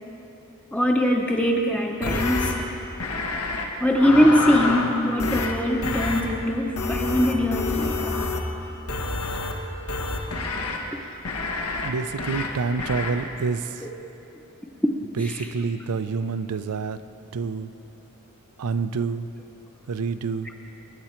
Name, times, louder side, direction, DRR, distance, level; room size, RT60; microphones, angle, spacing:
voice 1, 0.7-2.5 3.8-8.2, equal, 5° left, 1 dB, 0.6 m, -22 dB
sound 1, 2.0-2.5 3.0-3.6 4.0-4.9 5.2-5.5 5.8-6.2 6.8-8.5 8.9-9.5 9.9-10.8 11.3-11.9 12.2-12.5 12.8-13.1, left 3 dB, 85° left, 1.4 m, -27 dB
voice 2, 11.8-13.9 15.1-17.0 17.3-17.7 18.6-19.3 19.9-20.5, right 5 dB, 85° right, 12 dB, 0.5 m, -27 dB
21.0 x 9.3 x 4.4 m, 2.9 s
head